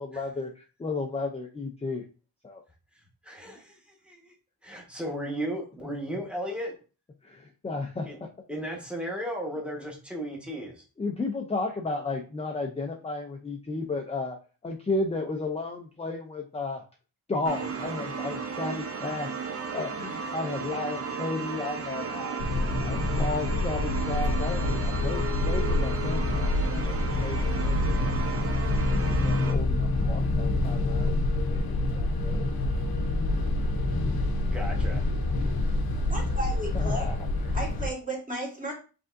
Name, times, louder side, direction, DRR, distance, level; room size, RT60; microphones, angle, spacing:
voice 1, 0.0-2.0 2.4-2.6 5.0-5.1 5.8-5.9 7.2-8.3 8.6-8.7 11.0-14.4 14.6-16.8 17.3-19.3 19.7-22.4 22.8-28.5 29.1-32.5 36.6-37.3, left 3 dB, 15° left, 3 dB, 0.4 m, -34 dB
voice 2, 3.2-4.3 4.6-6.8 8.0-8.2 8.5-10.8 34.5-35.1 37.4-37.6, equal, 5° right, -1 dB, 1.3 m, -35 dB
sound 1, 17.4-29.5, right 5 dB, 35° right, 0.6 m, -35 dB
sound 2, 22.4-37.9, left 2 dB, 60° left, 0.8 m, -27 dB
voice 3, 36.1-37.1 37.5-38.7, right 1 dB, 20° right, -2 dB, 1.6 m, -34 dB
5.1 x 3.5 x 2.5 m, 0.35 s
wide cardioid pair, 135°, 41 cm